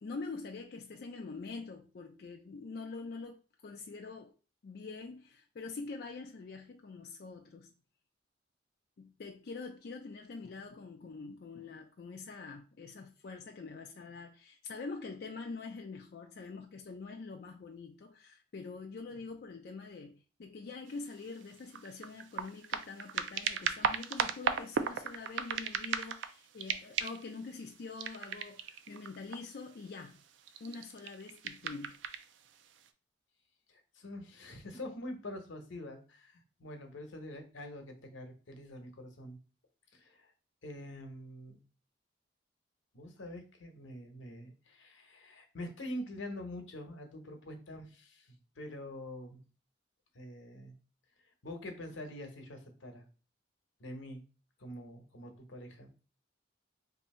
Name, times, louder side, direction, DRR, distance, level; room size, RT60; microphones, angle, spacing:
voice 1, 0.0-4.3 4.6-7.7 9.0-30.2 30.6-32.0, left 4 dB, 55° left, 0.4 m, -45 dB
sound 1, 20.9-21.0 21.4-26.3 26.6-27.3 28.0-29.6 30.4-32.2 32.9-33.0, right 7 dB, 75° right, 0.4 m, -36 dB
voice 2, 33.7-39.4 39.9-40.3 40.6-41.6 42.9-49.4 50.1-50.8 51.4-53.0 53.8-54.2 54.6-55.9, left 1 dB, 90° left, 0.8 m, -45 dB
2.7 x 2.6 x 4.2 m
head